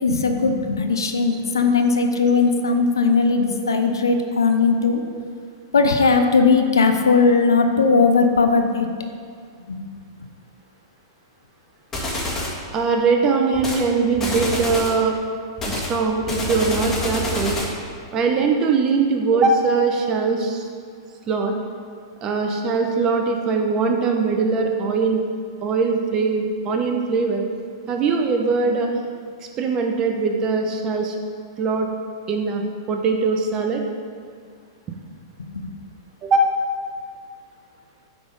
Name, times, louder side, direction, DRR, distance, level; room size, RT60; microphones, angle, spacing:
voice 1, 0.0-5.0 5.7-8.9 9.7-9.9 35.4-35.7, left 4 dB, 80° left, 6 dB, 0.6 m, -18 dB
sound 1, 11.9-12.6 13.5-13.8 14.1-15.0 15.6-17.8, left 1 dB, 15° left, 1.7 m, -27 dB
voice 2, 12.7-15.1 15.7-17.5 18.1-20.7 21.3-21.5 22.2-25.2 25.6-27.4 27.9-28.9 29.6-31.1 31.6-31.9 32.3-33.8 36.2-36.5, right 4 dB, 30° right, 3 dB, 0.9 m, -21 dB
9.4 x 3.7 x 4.0 m, 2.1 s
hypercardioid pair, 105°, 2 cm